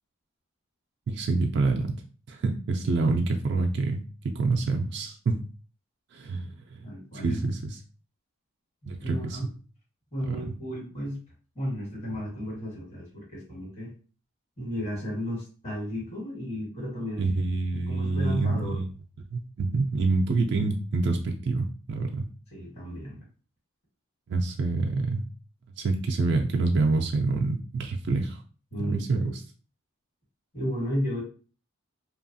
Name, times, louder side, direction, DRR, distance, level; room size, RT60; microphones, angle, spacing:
voice 1, 1.1-2.0 2.3-4.0 4.2-5.4 6.1-6.8 7.2-7.8 8.9-9.4 10.3-10.5 17.2-18.9 19.3-22.3 24.3-25.2 25.8-28.4 28.8-29.4, right 3 dB, 55° right, 2 dB, 0.3 m, -27 dB
voice 2, 6.8-7.4 8.8-9.5 10.1-11.2 11.5-13.9 14.6-17.2 17.7-18.8 22.5-23.2 28.7-29.3 30.5-31.2, equal, 30° left, -5 dB, 1.3 m, -33 dB
2.8 x 2.3 x 2.6 m, 0.38 s
head